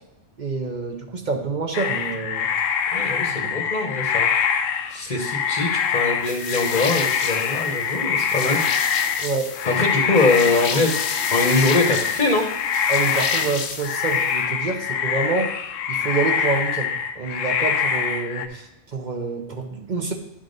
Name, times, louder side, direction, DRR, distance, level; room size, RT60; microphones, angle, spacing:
voice 1, 0.4-2.5 3.4-3.5 9.2-9.5 12.9-15.5 15.9-20.1, right 4 dB, 45° right, 3 dB, 0.8 m, -27 dB
sound 1, 1.7-18.5, left 7 dB, 85° left, 1.0 m, -24 dB
voice 2, 2.9-4.3 4.9-8.6 9.6-10.9 11.3-12.5, left 2 dB, 40° left, 1 dB, 1.0 m, -22 dB
sound 2, 6.2-14.4, left 6 dB, 65° left, 0.9 m, -31 dB
10.5 x 3.8 x 3.8 m, 0.89 s
omnidirectional pair, 1.3 m